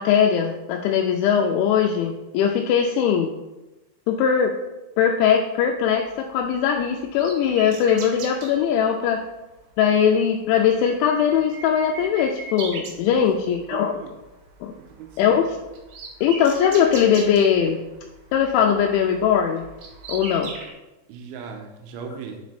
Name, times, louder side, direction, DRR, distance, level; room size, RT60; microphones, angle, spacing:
voice 1, 0.0-3.3 4.1-4.5 5.0-9.3 9.8-14.0 14.6-14.7 15.2-15.4 16.2-17.8 18.3-19.6 20.1-20.5, left 8 dB, 85° left, 2 dB, 2.8 m, -20 dB
sound 1, 6.0-8.6 9.5-9.7 10.1-10.2 10.5-13.7 14.0-14.3 14.6-20.7, right 3 dB, 70° right, 2.5 m, -39 dB
voice 2, 13.7-14.1 15.0-15.4 21.1-22.4, right 6 dB, 90° right, 3 dB, 3.1 m, -37 dB
9.3 x 5.1 x 3.3 m, 1.0 s
omnidirectional pair, 5.5 m